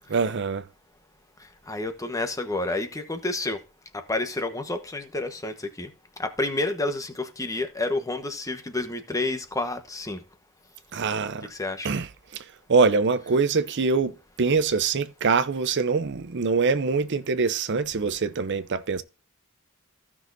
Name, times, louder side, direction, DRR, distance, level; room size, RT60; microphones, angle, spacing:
voice 1, 0.1-0.6 10.9-11.5 11.8-12.4 12.7-14.1 14.4-19.0, right 4 dB, 55° right, 0.6 m, -24 dB
voice 2, 1.7-3.6 3.9-5.9 6.2-10.2 11.5-11.9, left 2 dB, 15° left, 1.1 m, -29 dB
15.5 x 6.2 x 2.6 m
head